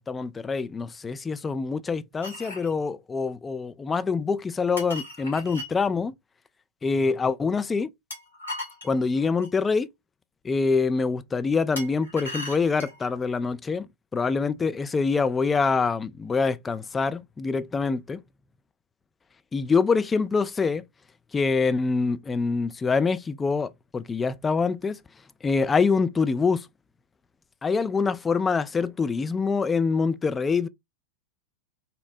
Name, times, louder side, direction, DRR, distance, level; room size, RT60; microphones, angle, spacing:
voice 1, 0.1-6.1 6.8-7.9 8.8-9.9 10.4-13.9 14.1-18.2 19.5-20.8 21.3-25.0 25.4-26.7 27.6-30.7, left 4 dB, 15° left, 0.3 m, -25 dB
sound 1, 2.2-2.7 4.8-5.7 8.1-9.6 11.8-13.1, left 1 dB, 80° left, 2.1 m, -38 dB
4.1 x 2.0 x 2.5 m
figure-of-eight pair, 90°, 0 cm